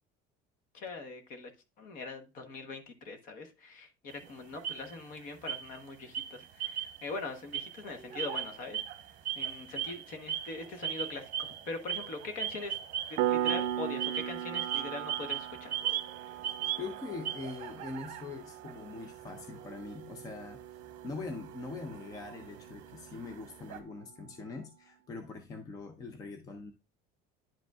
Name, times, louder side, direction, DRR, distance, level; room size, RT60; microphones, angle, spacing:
voice 1, 0.7-1.5 1.8-8.8 9.3-12.8 13.1-15.7, left 3 dB, 45° left, 7 dB, 1.1 m, -42 dB
sound 1, 4.1-5.2 5.5-5.8 6.1-7.1 7.4-23.8, right 10 dB, 40° right, 0.9 m, -39 dB
Piano, 13.2-23.6, right 12 dB, 65° right, 0.5 m, -38 dB
voice 2, 16.4-20.6 21.0-26.7, left 4 dB, 15° left, 7 dB, 0.4 m, -43 dB
10.5 x 5.0 x 2.3 m, 0.27 s
cardioid pair, 180°, 20 cm